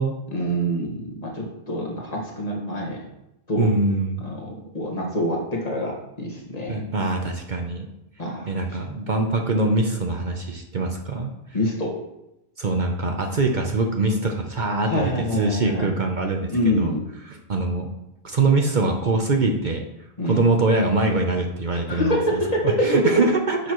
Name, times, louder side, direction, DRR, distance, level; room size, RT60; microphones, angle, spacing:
voice 1, 0.3-3.0 3.5-3.7 4.2-4.5 4.7-6.8 8.2-8.5 11.5-11.9 14.9-15.9 16.5-17.1 20.2-20.4 21.9-23.1, equal, 35° left, -2 dB, 1.7 m, -25 dB
voice 2, 3.6-4.2 6.7-7.9 8.4-11.3 12.6-16.9 17.3-17.9 18.2-19.8 20.2-23.7, right 3 dB, 50° right, 3 dB, 0.9 m, -23 dB
9.8 x 6.9 x 3.1 m, 0.88 s
omnidirectional pair, 1.1 m